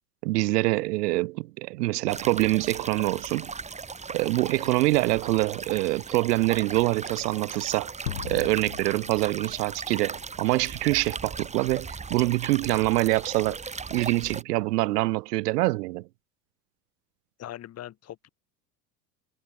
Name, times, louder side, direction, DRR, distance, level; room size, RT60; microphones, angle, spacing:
voice 1, 0.2-3.5 4.1-7.9 8.2-16.1, right 20 dB, 70° right, 0.5 m, -25 dB
sound 1, 2.1-14.4, right 4 dB, 15° right, 1.6 m, -38 dB
sound 2, 8.1-10.5, left 10 dB, 80° left, 2.0 m, -38 dB
voice 2, 17.4-18.3, left 12 dB, 30° left, 1.3 m, -40 dB
hypercardioid pair, 80°, 49 cm